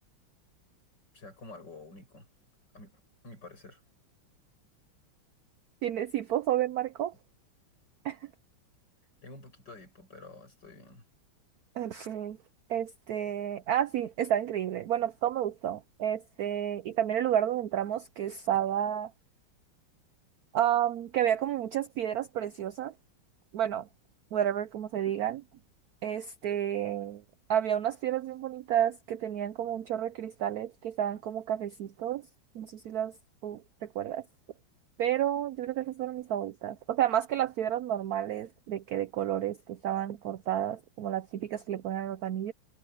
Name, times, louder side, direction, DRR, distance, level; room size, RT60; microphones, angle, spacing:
voice 1, 1.1-2.3 2.7-3.8 9.2-11.0 18.5-18.7, left 2 dB, 55° left, 8.6 m, -49 dB
voice 2, 5.8-7.1 8.0-8.3 11.8-12.4 12.7-19.1 20.5-22.9 23.5-23.9 24.3-25.4 26.0-27.2 27.5-32.3 32.5-33.1 33.4-34.2 35.0-42.5, right 10 dB, 85° right, 0.8 m, -31 dB
omnidirectional pair, 2.3 m